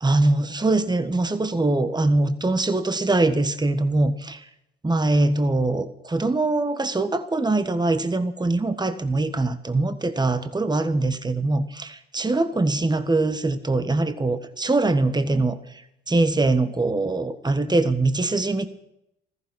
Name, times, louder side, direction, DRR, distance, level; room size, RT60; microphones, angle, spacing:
voice 1, 0.0-4.5 4.8-15.6 16.1-18.7, right 2 dB, 15° right, 10 dB, 1.5 m, -22 dB
15.5 x 14.5 x 5.9 m, 0.81 s
hypercardioid pair, 55°, 31 cm